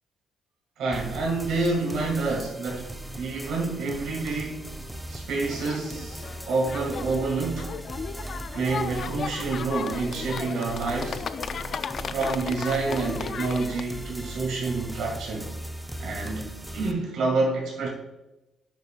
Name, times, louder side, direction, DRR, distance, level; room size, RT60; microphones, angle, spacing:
voice 1, 0.8-4.8 5.1-7.8 8.5-11.2 12.1-15.5 16.0-17.9, right 3 dB, 80° right, 1.9 m, -28 dB
sound 1, 0.9-16.9, right 1 dB, 5° right, 0.5 m, -38 dB
sound 2, 5.5-13.8, left 6 dB, 50° left, 0.3 m, -35 dB
10.5 x 5.3 x 2.4 m
cardioid pair, 110°, 0 cm